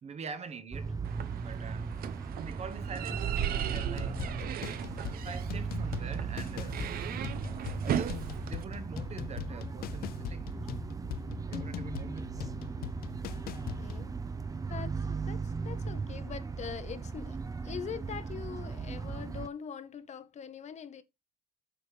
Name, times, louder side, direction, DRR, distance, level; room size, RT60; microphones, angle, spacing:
voice 1, 0.0-0.9 1.4-1.9 2.4-4.6 5.1-6.9 7.4-10.7 11.4-12.5, right 5 dB, 40° right, 1.1 m, -45 dB
sound 1, 0.7-19.5, right 5 dB, 20° right, 0.6 m, -37 dB
sound 2, 1.0-8.6, right 9 dB, 60° right, 0.9 m, -37 dB
sound 3, 3.7-14.1, left 14 dB, 65° left, 0.5 m, -42 dB
voice 2, 13.8-14.1 14.7-17.4 17.6-21.0, left 7 dB, 45° left, 0.9 m, -42 dB
7.9 x 4.8 x 4.9 m
cardioid pair, 110°, 17 cm